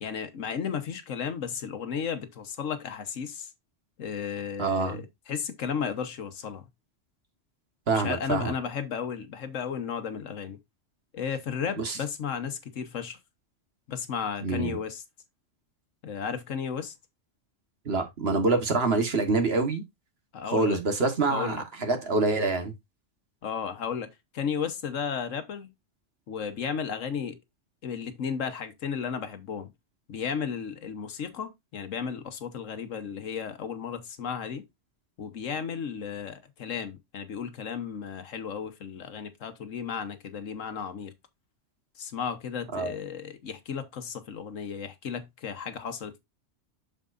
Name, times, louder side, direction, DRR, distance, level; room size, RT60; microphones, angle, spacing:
voice 1, 0.0-3.5 4.0-6.6 7.9-10.6 11.1-13.2 13.9-15.0 16.0-16.9 20.3-20.8 21.3-21.6 23.4-24.1 24.3-25.7 26.3-27.4 27.8-29.7 30.1-34.6 35.2-41.1 42.0-46.2, left 7 dB, 90° left, 1.4 m, -34 dB
voice 2, 4.6-5.0 7.9-8.5 11.8-12.0 14.4-14.8 17.8-19.8 20.5-22.7 42.7-42.9, right 3 dB, 55° right, 1.6 m, -26 dB
7.3 x 6.7 x 2.5 m
omnidirectional pair, 1.3 m